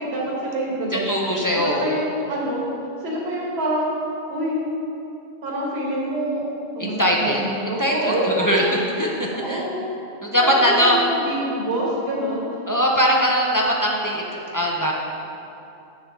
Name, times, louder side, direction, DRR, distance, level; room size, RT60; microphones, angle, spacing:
voice 1, 0.0-2.6 3.0-3.9 4.3-4.6 5.4-6.4 6.7-8.8 9.3-9.8 10.4-12.5, right 1 dB, 65° right, -4 dB, 1.5 m, -26 dB
voice 2, 0.9-2.0 6.8-7.4 7.8-8.6 9.0-9.7 10.2-11.0 12.7-14.9, equal, 25° left, -2 dB, 0.5 m, -21 dB
8.2 x 6.3 x 3.5 m, 2.7 s
omnidirectional pair, 1.2 m